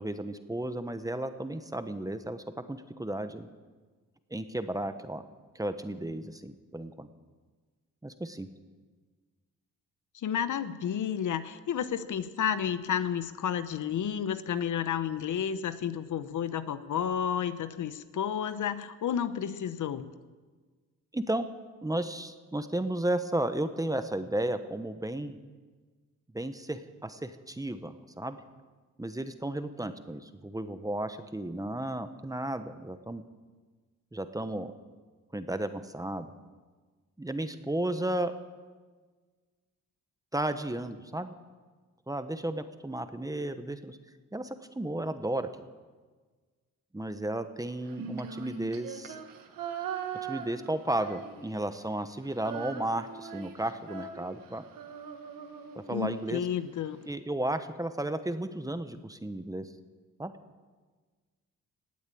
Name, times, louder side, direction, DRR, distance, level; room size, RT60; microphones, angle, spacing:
voice 1, 0.0-3.5 4.3-5.2 5.5-7.1 8.0-8.5 21.1-21.5 21.8-25.4 26.3-28.4 29.0-33.2 34.1-34.7 35.3-36.3 37.2-38.3 40.3-41.3 42.1-44.0 44.3-45.5 46.9-49.2 50.3-54.6 55.7-56.4 57.1-59.7 60.2-60.3, right 1 dB, 10° right, 10 dB, 1.0 m, -33 dB
voice 2, 10.1-20.1 55.9-57.0, left 8 dB, 65° left, 12 dB, 0.9 m, -31 dB
Female singing, 47.8-51.8 52.0-56.3, right 7 dB, 90° right, 1.4 m, -41 dB
18.5 x 8.2 x 8.5 m, 1.4 s
cardioid pair, 90°, 32 cm